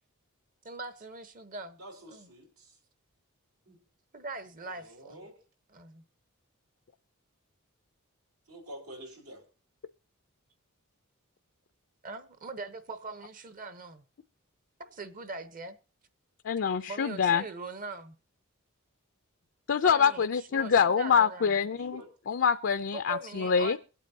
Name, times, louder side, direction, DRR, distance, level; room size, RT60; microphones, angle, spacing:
voice 1, 0.6-1.8 2.1-2.3 4.1-5.2 5.7-6.0 12.0-14.0 14.8-15.8 16.9-18.1 19.8-21.5 22.9-23.8, right 3 dB, 40° right, 1.0 m, -41 dB
voice 2, 1.8-2.7 3.7-3.8 4.7-5.4 8.5-9.4 21.7-22.1, equal, 85° right, 4.3 m, -47 dB
voice 3, 16.4-17.4 19.7-22.0 22.3-23.8, left 6 dB, 55° left, 0.5 m, -25 dB
23.5 x 8.3 x 2.8 m
head